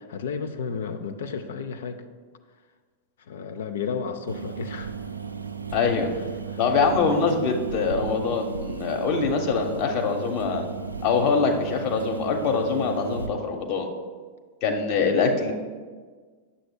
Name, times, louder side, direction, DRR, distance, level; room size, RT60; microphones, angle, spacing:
voice 1, 0.0-2.0 3.3-4.9 6.5-6.6 9.2-9.4, left 6 dB, 60° left, 7 dB, 0.4 m, -32 dB
sound 1, 4.3-13.3, right 5 dB, 80° right, 0.4 m, -35 dB
voice 2, 5.7-6.1 6.6-10.6 11.0-13.9 14.6-15.5, left 5 dB, 40° left, 3 dB, 0.9 m, -24 dB
9.1 x 6.8 x 2.2 m, 1.5 s
figure-of-eight pair, 90°, 0 cm